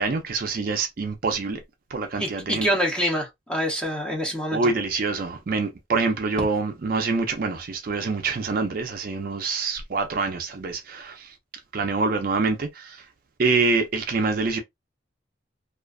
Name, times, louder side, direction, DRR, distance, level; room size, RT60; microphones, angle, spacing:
voice 1, 0.0-1.6 1.9-2.7 4.5-11.3 11.7-13.0 13.4-14.6, right 4 dB, 45° right, 0.4 m, -26 dB
voice 2, 2.2-4.7, equal, 5° left, 0.7 m, -26 dB
2.4 x 2.3 x 2.3 m
head